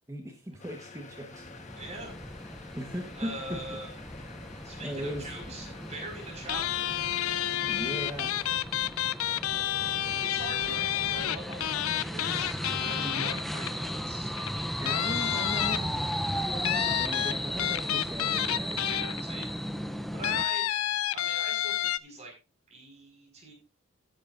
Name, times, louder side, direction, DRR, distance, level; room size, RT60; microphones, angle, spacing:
voice 1, 0.1-1.5 2.8-3.6 4.8-5.3 7.7-8.3 11.6-11.7 13.0-13.3 14.8-16.1 16.4-18.8, equal, 15° right, 2 dB, 1.2 m, -38 dB
sound 1, 0.6-8.6, left 4 dB, 35° left, 1.2 m, -48 dB
sound 2, 1.3-20.4, equal, ahead, 0.6 m, -36 dB
voice 2, 1.7-2.1 3.1-4.0 4.6-6.9 7.6-7.9 9.5-9.7 10.2-15.9 19.2-19.5 19.8-20.7 21.1-22.3 22.7-23.5, right 2 dB, 30° right, 2 dB, 5.0 m, -43 dB
sound 3, 6.5-13.9 14.4-14.5 14.9-16.1 16.6-19.4 20.2-22.0, left 12 dB, 75° left, 0.5 m, -30 dB
14.0 x 9.7 x 2.5 m, 0.29 s
head